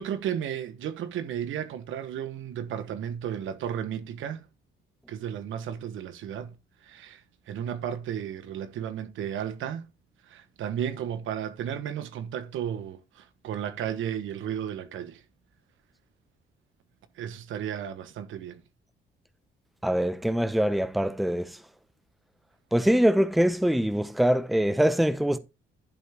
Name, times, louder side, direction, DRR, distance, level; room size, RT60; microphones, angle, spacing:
voice 1, 0.0-4.5 5.1-6.5 6.8-9.9 10.2-15.2 17.1-18.6, right 9 dB, 80° right, 1.1 m, -34 dB
voice 2, 19.8-21.6 22.7-25.4, equal, ahead, 0.7 m, -23 dB
11.0 x 5.6 x 3.5 m
cardioid pair, 90°, 20 cm